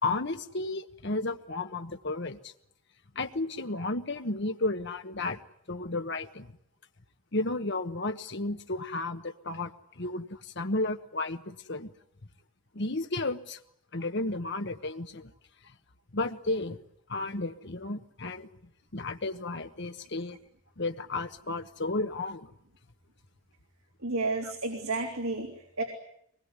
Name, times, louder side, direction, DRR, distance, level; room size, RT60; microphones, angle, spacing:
voice 1, 0.0-2.5 3.1-5.4 5.7-6.5 7.3-11.9 12.7-13.6 13.9-15.3 16.1-16.8 17.1-18.5 18.9-20.4 20.8-22.5, left 2 dB, 55° left, 6 dB, 1.2 m, -33 dB
voice 2, 24.0-25.8, right 3 dB, 80° right, 2 dB, 3.3 m, -31 dB
24.0 x 20.5 x 9.8 m, 0.70 s
head